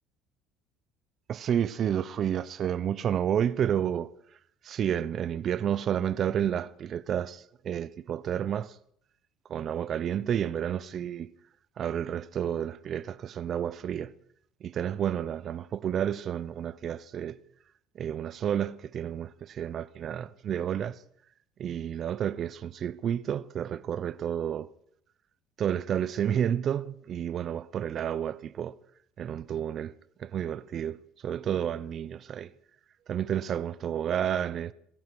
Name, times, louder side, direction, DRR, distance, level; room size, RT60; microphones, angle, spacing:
voice 1, 1.3-4.1 4.6-8.8 9.5-11.3 11.8-14.1 14.6-17.4 18.0-21.0 21.6-24.7 25.6-28.7 29.2-29.9 30.2-31.0 31.2-32.5 33.1-34.7, right 9 dB, 45° right, 0.7 m, -30 dB
26.5 x 11.5 x 4.7 m
cardioid pair, 110°, 0 cm